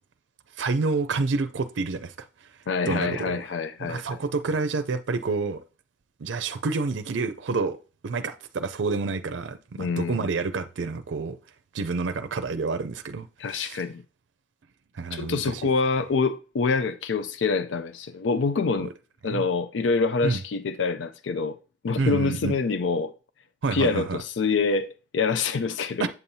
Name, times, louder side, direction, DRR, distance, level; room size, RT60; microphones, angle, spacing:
voice 1, 0.6-2.3 2.9-3.4 3.8-5.6 6.2-7.8 8.0-11.4 11.7-13.8 14.9-15.6 18.8-18.9 19.3-19.4 20.2-20.4 22.0-22.5 23.6-24.2 26.0-26.1, right 4 dB, 85° right, 0.5 m, -28 dB
voice 2, 2.7-4.2 9.8-10.3 13.4-14.0 15.1-18.9 19.2-21.6 21.8-23.1 23.7-26.1, left 4 dB, 85° left, 0.4 m, -26 dB
8.0 x 7.0 x 2.7 m
head